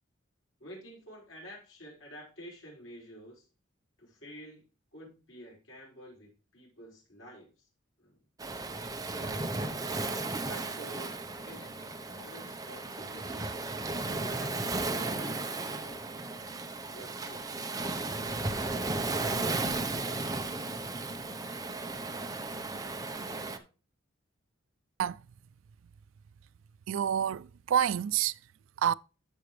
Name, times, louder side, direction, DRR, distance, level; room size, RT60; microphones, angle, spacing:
voice 1, 0.6-3.5 4.0-4.6 4.9-7.7 8.0-8.2 9.0-9.5 10.4-11.2 11.4-13.5 14.0-16.3 16.9-17.8, equal, 90° left, 5.4 m, -50 dB
Waves surf, 8.4-23.6, right 2 dB, 20° right, 0.8 m, -35 dB
voice 2, 26.9-28.3 28.8-28.9, right 9 dB, 85° right, 0.4 m, -28 dB
13.5 x 5.0 x 3.2 m
head